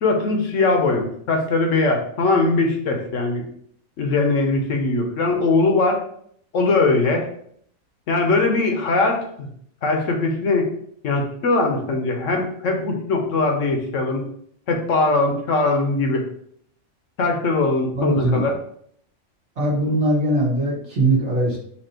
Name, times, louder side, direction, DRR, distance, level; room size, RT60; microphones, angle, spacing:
voice 1, 0.0-3.4 4.0-6.0 6.5-7.3 8.1-9.5 9.8-10.7 11.0-14.3 14.7-16.2 17.2-18.5, left 3 dB, 65° left, 2 dB, 1.2 m, -20 dB
voice 2, 17.9-18.5 19.6-21.6, right 1 dB, 55° right, -4 dB, 1.5 m, -20 dB
4.4 x 2.8 x 4.2 m, 0.65 s
omnidirectional pair, 1.4 m